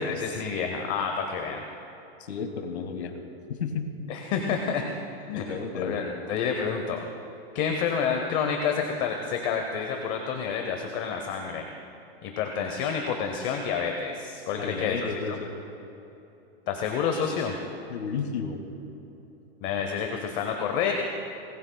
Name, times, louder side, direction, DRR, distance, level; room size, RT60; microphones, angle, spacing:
voice 1, 0.0-1.6 4.1-4.9 5.2-5.4 5.7-7.0 7.5-11.6 12.2-15.0 16.7-17.5 19.6-20.9, left 6 dB, 25° left, 3 dB, 0.8 m, -29 dB
voice 2, 2.2-3.2 3.5-3.9 5.3-6.0 14.6-15.5 17.9-18.6, left 6 dB, 85° left, 5 dB, 2.0 m, -32 dB
25.0 x 19.5 x 2.3 m, 3.0 s
supercardioid pair, 165°, 31 cm